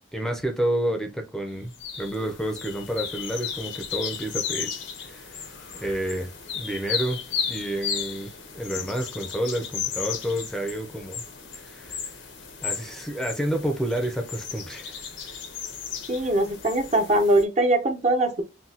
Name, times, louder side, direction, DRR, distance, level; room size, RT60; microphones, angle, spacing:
voice 1, 0.1-5.4 5.8-7.2 7.5-11.2 11.5-12.1 12.6-15.4 16.2-16.3, right 1 dB, 5° left, 0.6 m, -30 dB
sound 1, 1.7-17.4, left 7 dB, 85° left, 1.1 m, -35 dB
voice 2, 16.1-18.4, right 1 dB, 35° right, 0.7 m, -22 dB
6.0 x 2.2 x 2.7 m
head